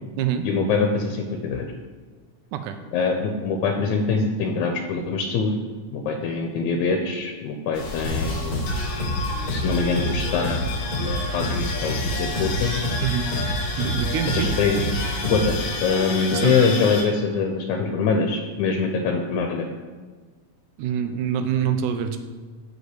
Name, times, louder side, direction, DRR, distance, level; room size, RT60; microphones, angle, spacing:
voice 1, 0.4-1.7 2.9-5.6 5.9-8.6 9.5-10.7 11.0-12.7 14.3-14.8 15.2-19.7, left 5 dB, 80° left, 3 dB, 2.0 m, -24 dB
sound 1, 7.7-17.0, left 3 dB, 60° left, 2.0 m, -31 dB
sound 2, 8.0-15.7, equal, 30° left, 2.0 m, -28 dB
voice 2, 13.8-14.5 16.3-16.7 20.8-22.2, right 8 dB, 85° right, 8 dB, 2.1 m, -25 dB
6.2 x 5.1 x 6.7 m, 1.4 s
omnidirectional pair, 3.5 m